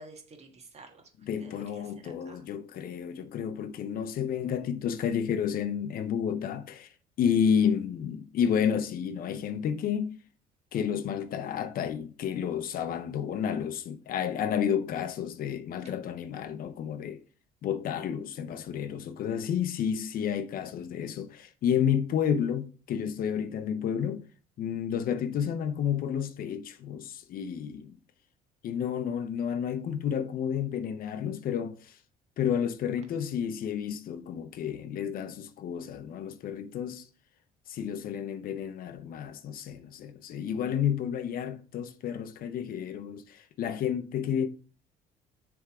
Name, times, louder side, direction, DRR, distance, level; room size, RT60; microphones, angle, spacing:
voice 1, 0.0-1.1 1.4-2.4, right 2 dB, 40° right, 1.5 m, -51 dB
voice 2, 1.2-6.9 7.2-10.2 10.7-17.2 17.6-24.2 24.6-28.0 28.6-32.0 32.4-37.1 37.7-44.5, left 8 dB, 60° left, 0.6 m, -31 dB
6.6 x 3.5 x 4.7 m
cardioid pair, 110°, 17 cm